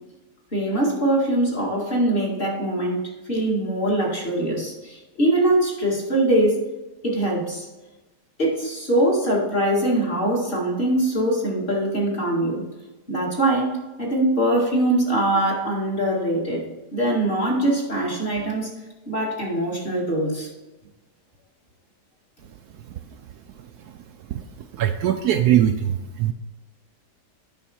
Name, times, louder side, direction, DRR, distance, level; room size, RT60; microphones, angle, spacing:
voice 1, 0.5-6.6 7.0-7.7 8.4-12.6 13.1-16.6 16.9-18.7 19.1-20.5, right 1 dB, 30° left, -3 dB, 2.3 m, -22 dB
voice 2, 22.8-23.2 23.6-24.0 24.3-26.3, right 10 dB, 70° right, 7 dB, 1.0 m, -23 dB
9.2 x 6.1 x 4.3 m, 1.1 s
omnidirectional pair, 1.9 m